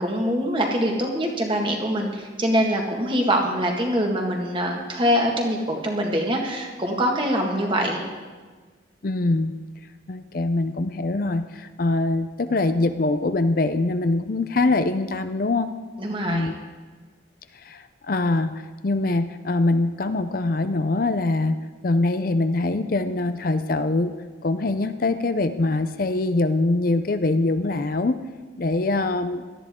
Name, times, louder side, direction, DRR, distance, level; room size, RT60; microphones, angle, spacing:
voice 1, 0.0-8.0 16.0-16.5, equal, 25° right, 1 dB, 1.8 m, -24 dB
voice 2, 9.0-9.5 10.1-15.7 16.2-16.5 17.5-24.1 24.4-28.2 28.6-29.4, left 2 dB, 50° left, 10 dB, 0.5 m, -23 dB
17.5 x 13.0 x 3.7 m, 1.4 s
head